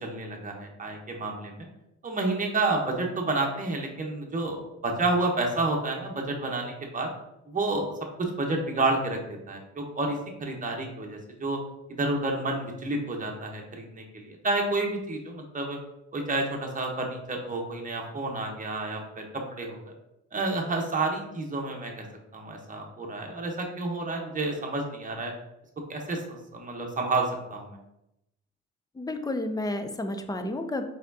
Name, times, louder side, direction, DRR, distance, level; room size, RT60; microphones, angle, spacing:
voice 1, 0.0-1.7 2.0-7.1 7.5-7.9 8.2-9.2 9.5-11.6 11.9-15.8 16.1-19.9 20.3-22.0 22.3-25.3 25.9-27.8, right 2 dB, 25° right, 1 dB, 1.0 m, -30 dB
voice 2, 29.0-30.8, left 1 dB, 15° left, 7 dB, 0.4 m, -31 dB
4.2 x 3.6 x 2.7 m, 0.87 s
cardioid pair, 90°, 30 cm